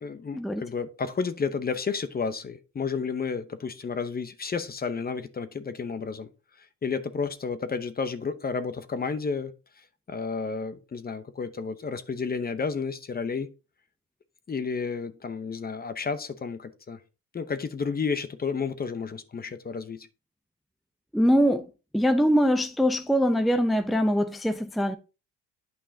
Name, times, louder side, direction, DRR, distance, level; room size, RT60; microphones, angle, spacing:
voice 1, 0.0-6.3 6.6-13.5 14.5-17.0 17.3-20.1, left 5 dB, 30° left, 0.8 m, -31 dB
voice 2, 21.1-21.7 21.9-25.0, equal, ahead, 0.6 m, -23 dB
8.9 x 5.4 x 2.7 m
cardioid pair, 90°, 30 cm